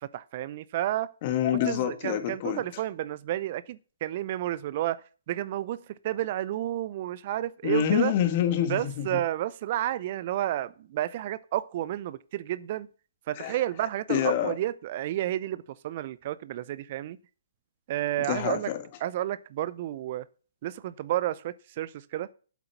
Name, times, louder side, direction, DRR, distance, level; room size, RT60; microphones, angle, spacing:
voice 1, 0.1-1.1 1.7-8.1 8.7-12.9 13.3-17.2 17.9-18.7 19.0-20.3 20.6-22.3, right 13 dB, 45° right, 0.5 m, -31 dB
voice 2, 1.2-2.6 7.6-9.1 13.4-13.6 14.1-14.6 18.3-18.8, left 10 dB, 40° left, 1.9 m, -26 dB
8.3 x 7.7 x 5.7 m
figure-of-eight pair, 130°, 0 cm